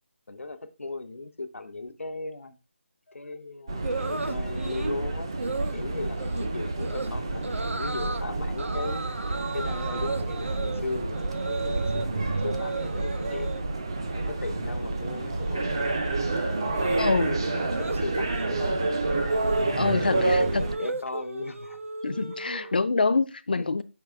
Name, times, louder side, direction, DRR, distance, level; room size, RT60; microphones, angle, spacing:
voice 1, 0.3-2.6 3.1-5.3 5.7-9.0 9.5-13.6 14.1-15.9 16.5-19.3 19.6-21.8 22.4-22.7 23.5-23.7, left 3 dB, 85° left, 0.8 m, -37 dB
sound 1, 3.7-20.8, right 2 dB, 20° right, 0.4 m, -29 dB
sound 2, 3.8-5.0 5.4-5.8 6.2-6.5 6.8-7.1 7.4-8.2 8.6-12.1 12.3-13.6 13.9-14.4 14.6-22.8, right 3 dB, 90° right, 0.7 m, -35 dB
voice 2, 17.0-17.4 19.8-20.6 22.0-23.8, left 3 dB, 45° left, 0.4 m, -25 dB
5.8 x 4.7 x 3.5 m
figure-of-eight pair, 175°, 7 cm